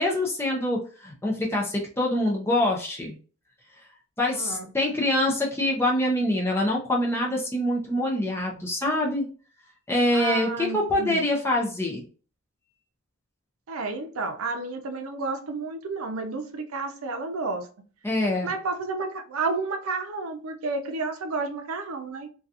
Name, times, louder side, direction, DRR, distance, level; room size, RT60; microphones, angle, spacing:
voice 1, 0.0-3.2 4.2-9.3 9.9-12.0 18.0-18.5, left 1 dB, 10° left, 0.5 m, -25 dB
voice 2, 4.3-4.7 10.1-11.3 13.7-17.7 18.4-22.3, right 3 dB, 85° right, 0.5 m, -31 dB
2.7 x 2.3 x 2.4 m
head